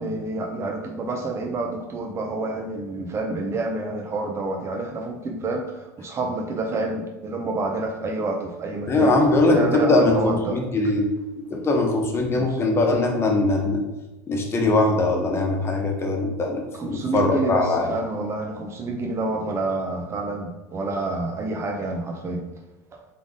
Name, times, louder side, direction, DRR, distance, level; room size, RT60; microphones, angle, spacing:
voice 1, 0.0-9.2 9.5-10.6 12.3-12.6 16.7-22.4 22.9-23.0, right 2 dB, 30° right, 2 dB, 0.7 m, -28 dB
voice 2, 8.9-11.1 11.5-13.8 14.3-17.9, left 2 dB, 25° left, 1 dB, 1.1 m, -21 dB
3.7 x 3.5 x 3.8 m, 1.1 s
hypercardioid pair, 85°, 10 cm